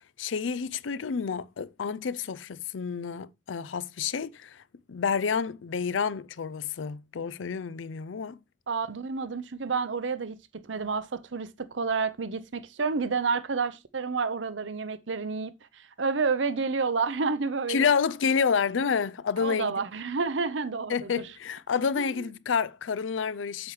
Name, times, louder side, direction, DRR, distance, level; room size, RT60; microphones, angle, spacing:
voice 1, 0.0-4.6 4.9-8.4 17.7-19.7 20.9-23.7, left 6 dB, 85° left, 0.5 m, -29 dB
voice 2, 8.7-10.4 10.7-17.9 19.4-21.3 22.0-22.2, right 4 dB, 80° right, 0.7 m, -30 dB
8.0 x 7.1 x 3.2 m
head